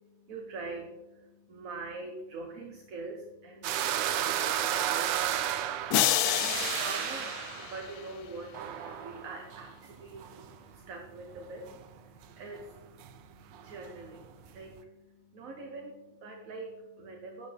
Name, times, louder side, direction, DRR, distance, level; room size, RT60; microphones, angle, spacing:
voice 1, 0.0-17.5, right 3 dB, 50° right, 2 dB, 1.3 m, -44 dB
sound 1, 3.6-10.8 11.0-12.0 12.2-12.3 12.5-14.8, right 11 dB, 75° right, 1.3 m, -33 dB
sound 2, 5.9-8.3, left 11 dB, 75° left, 0.9 m, -29 dB
15.5 x 8.1 x 3.4 m, 1.1 s
omnidirectional pair, 2.1 m